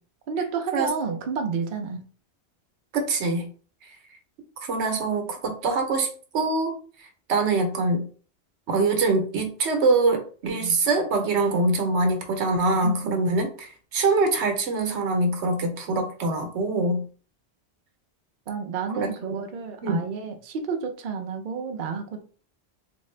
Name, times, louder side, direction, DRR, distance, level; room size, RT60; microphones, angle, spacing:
voice 1, 0.3-2.0 10.4-10.8 12.8-13.4 18.5-22.2, right 5 dB, 55° right, 5 dB, 0.7 m, -31 dB
voice 2, 2.9-3.5 4.6-6.1 6.3-6.8 7.3-8.1 8.7-17.1 19.0-19.4 19.8-20.0, right 3 dB, 90° right, 5 dB, 1.1 m, -24 dB
3.6 x 2.5 x 3.2 m, 0.41 s
omnidirectional pair, 1.1 m